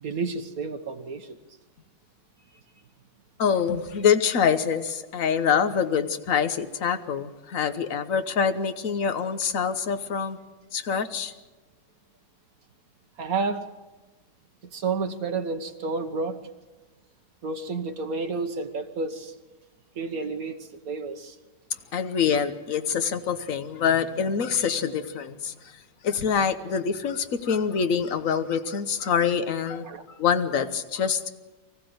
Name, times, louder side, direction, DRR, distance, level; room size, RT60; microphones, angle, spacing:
voice 1, 0.0-1.3 13.2-13.7 14.7-16.4 17.4-19.3 20.0-21.4 29.8-30.0, right 4 dB, 65° right, 6 dB, 1.7 m, -30 dB
voice 2, 3.4-10.4 10.7-11.3 21.9-25.5 26.0-29.9 30.2-31.3, left 7 dB, 60° left, 9 dB, 1.4 m, -25 dB
24.5 x 15.0 x 7.9 m, 1.2 s
omnidirectional pair, 1.7 m